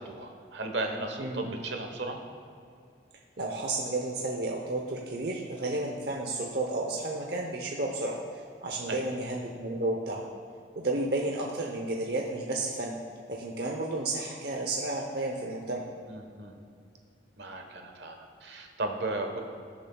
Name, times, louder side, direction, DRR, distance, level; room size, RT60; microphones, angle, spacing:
voice 1, 0.0-2.2 8.9-9.1 16.1-16.6 17.4-18.2 18.4-19.4, right 2 dB, 80° right, 4 dB, 1.2 m, -35 dB
voice 2, 1.2-1.5 3.4-8.2 8.6-10.2 10.8-12.9 13.3-15.8, right 2 dB, 60° right, -1 dB, 0.8 m, -32 dB
19.0 x 7.1 x 2.3 m, 2.3 s
head